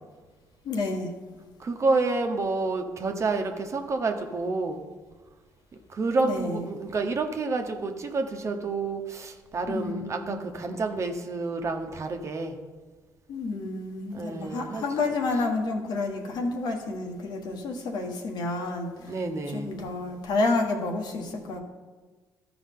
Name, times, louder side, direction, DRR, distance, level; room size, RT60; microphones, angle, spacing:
voice 1, 0.6-1.1 6.2-6.6 9.7-10.4 13.3-19.1 19.5-21.6, left 3 dB, 70° left, 1 dB, 1.5 m, -30 dB
voice 2, 1.6-4.8 5.9-12.6 14.1-14.8 19.1-19.8, right 3 dB, 40° right, 5 dB, 1.1 m, -29 dB
13.5 x 4.8 x 3.8 m, 1.3 s
supercardioid pair, 75°, 7 cm